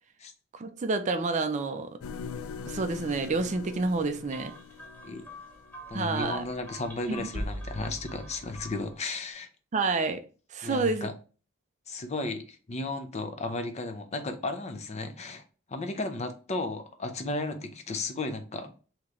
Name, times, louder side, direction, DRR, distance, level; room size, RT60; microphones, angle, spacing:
voice 1, 0.5-2.0 2.7-4.5 5.9-6.4 7.1-7.3 9.7-10.2 10.5-11.1, right 3 dB, 35° right, 0.4 m, -29 dB
sound 1, 2.0-6.0, left 6 dB, 85° left, 0.3 m, -42 dB
sound 2, 4.3-9.1, equal, 10° left, 0.9 m, -42 dB
voice 2, 5.9-9.5 10.6-11.1 11.9-15.4 15.7-18.7, left 2 dB, 35° left, 0.5 m, -34 dB
3.7 x 2.9 x 3.0 m
head